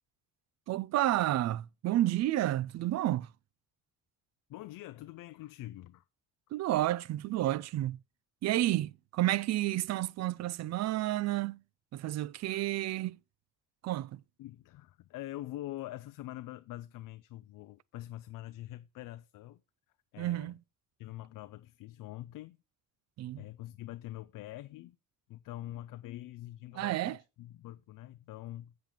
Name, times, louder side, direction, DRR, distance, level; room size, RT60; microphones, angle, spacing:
voice 1, 0.7-3.3 6.5-8.0 8.4-11.6 11.9-13.2 13.8-14.2 20.2-20.6 23.2-23.4 26.8-27.2, right 14 dB, 50° right, 0.4 m, -30 dB
voice 2, 4.5-6.0 12.5-12.6 14.4-19.6 20.1-20.5 21.0-22.6 23.4-25.0 25.3-28.7, left 15 dB, 70° left, 0.5 m, -44 dB
7.6 x 7.4 x 5.0 m
cardioid pair, 155°, 34 cm